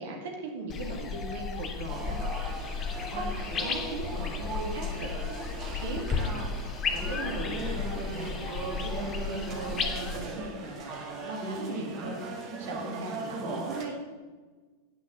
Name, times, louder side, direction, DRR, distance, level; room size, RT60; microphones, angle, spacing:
voice 1, 0.0-2.6 3.1-5.1 5.7-9.8 10.1-14.1, right 2 dB, 55° right, 2 dB, 2.1 m, -39 dB
sound 1, 0.7-10.2, left 5 dB, 25° left, 1.0 m, -34 dB
sound 2, 1.9-13.8, right 3 dB, 35° right, 1.9 m, -38 dB
9.2 x 6.1 x 6.8 m, 1.4 s
figure-of-eight pair, 90°, 0 cm